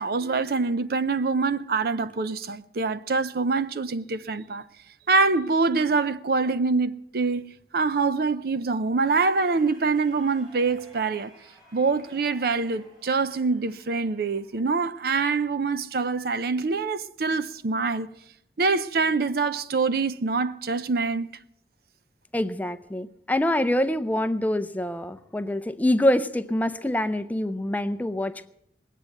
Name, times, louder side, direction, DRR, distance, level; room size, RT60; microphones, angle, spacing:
voice 1, 0.0-4.6 5.1-11.3 11.7-18.1 18.6-21.3, right 4 dB, 55° right, 0.6 m, -25 dB
sound 1, 9.0-15.2, right 1 dB, 25° right, 5.9 m, -54 dB
voice 2, 22.3-28.5, left 1 dB, 10° left, 0.5 m, -25 dB
20.0 x 8.3 x 7.9 m
head